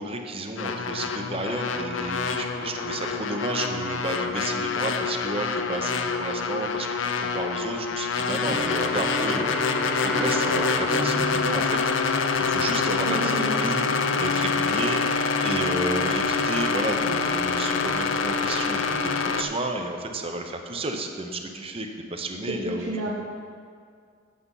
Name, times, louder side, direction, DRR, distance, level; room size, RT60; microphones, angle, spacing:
voice 1, 0.0-6.9 7.2-9.5 10.0-11.8 12.4-13.2 13.6-22.8, right 2 dB, 30° right, 4 dB, 0.7 m, -32 dB
sound 1, 0.6-19.4, left 4 dB, 80° left, 0.5 m, -26 dB
Bowed string instrument, 8.4-12.7, equal, ahead, 0.5 m, -33 dB
voice 2, 13.0-13.6 22.5-23.1, right 2 dB, 85° right, -4 dB, 1.1 m, -30 dB
8.6 x 6.7 x 5.5 m, 2.1 s
head